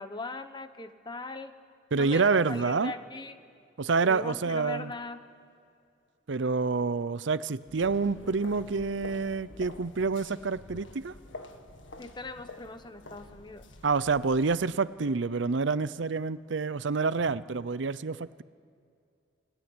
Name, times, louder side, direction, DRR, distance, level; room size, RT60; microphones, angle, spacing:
voice 1, 0.0-1.6 2.0-3.4 4.1-5.2 12.0-13.6, left 3 dB, 25° left, 9 dB, 1.1 m, -40 dB
voice 2, 1.9-2.9 3.8-4.9 6.3-11.1 13.8-18.4, right 4 dB, 65° right, 16 dB, 0.6 m, -28 dB
sound 1, 7.6-14.6, left 2 dB, 70° left, 1.8 m, -48 dB
28.5 x 18.5 x 9.7 m, 2.4 s
head